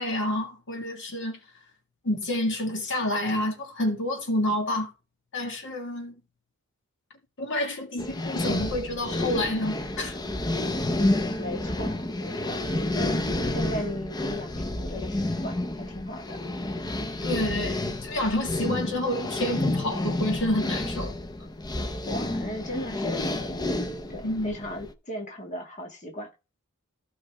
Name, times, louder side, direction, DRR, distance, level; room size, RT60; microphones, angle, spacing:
voice 1, 0.0-1.4 2.0-4.9 5.3-6.1 7.4-10.2 17.2-21.1 24.2-24.6, left 1 dB, 60° left, 1.8 m, -29 dB
sound 1, 8.0-24.9, left 1 dB, 20° left, 0.7 m, -30 dB
voice 2, 10.9-13.2 13.5-16.4 22.1-23.7 24.1-26.3, left 1 dB, 35° left, 1.7 m, -37 dB
15.5 x 5.4 x 3.5 m
head